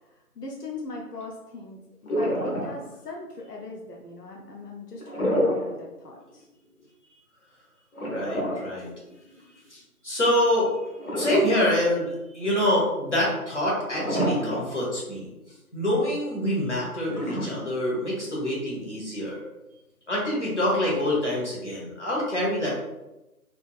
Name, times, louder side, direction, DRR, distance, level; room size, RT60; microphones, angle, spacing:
voice 1, 0.4-6.5, left 2 dB, 90° left, 0 dB, 0.7 m, -39 dB
sound 1, 2.1-3.0 5.0-5.8 6.2-6.3 7.9-9.4 11.0-11.9 12.3-12.4 13.9-14.8 15.2-15.3 17.0-18.0, equal, 70° left, 1.1 m, -28 dB
voice 2, 8.0-8.9 9.7-10.7 11.1-15.3 15.7-19.4 20.1-22.7, left 1 dB, 50° left, -5 dB, 1.3 m, -26 dB
3.4 x 3.0 x 2.3 m, 0.98 s
figure-of-eight pair, 175°, 46 cm